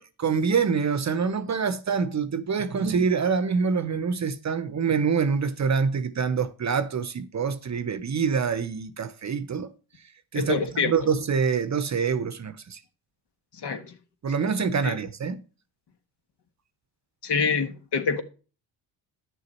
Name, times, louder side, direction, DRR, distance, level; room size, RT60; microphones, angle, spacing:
voice 1, 0.0-9.7 10.3-12.8 14.2-15.4, right 6 dB, 35° right, 0.8 m, -26 dB
voice 2, 10.3-10.9 13.5-13.9 14.8-15.0 17.2-18.2, left 5 dB, 55° left, 1.5 m, -26 dB
10.5 x 6.7 x 4.3 m
supercardioid pair, 65°, 48 cm